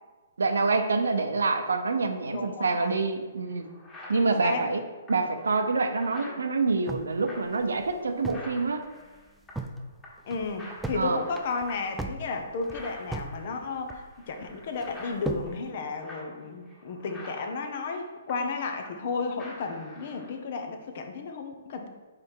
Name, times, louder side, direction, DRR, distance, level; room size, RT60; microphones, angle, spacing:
voice 1, 0.4-3.7 4.1-4.8 5.1-8.8 10.9-11.2, right 3 dB, 75° right, 7 dB, 0.6 m, -26 dB
voice 2, 2.3-3.0 4.1-4.6 10.3-21.9, left 4 dB, 50° left, 5 dB, 0.8 m, -33 dB
sound 1, 3.4-9.8 10.0-10.3 10.6-19.1 19.4-20.4, left 1 dB, 15° left, 1.7 m, -48 dB
sound 2, 6.9-8.6 8.9-9.0 9.3-9.8 10.2-11.0 11.3-13.4 13.6-14.3 14.8-15.5, right 2 dB, 5° right, 0.4 m, -36 dB
4.8 x 4.3 x 4.7 m, 1.3 s
figure-of-eight pair, 130°, 0 cm